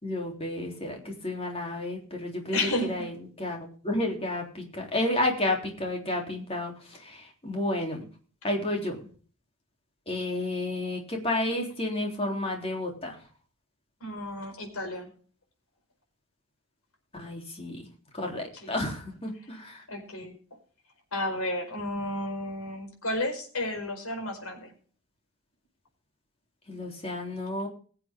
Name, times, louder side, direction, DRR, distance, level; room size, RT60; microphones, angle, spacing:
voice 1, 0.0-8.0 8.4-9.0 10.1-13.2 17.1-17.8 18.1-19.8 26.7-27.7, left 1 dB, 25° left, 1 dB, 3.4 m, -31 dB
voice 2, 2.5-3.0 14.0-15.1 18.5-18.7 19.9-20.3 21.1-24.7, left 1 dB, 80° left, 4 dB, 4.8 m, -32 dB
21.0 x 7.9 x 3.7 m, 0.42 s
head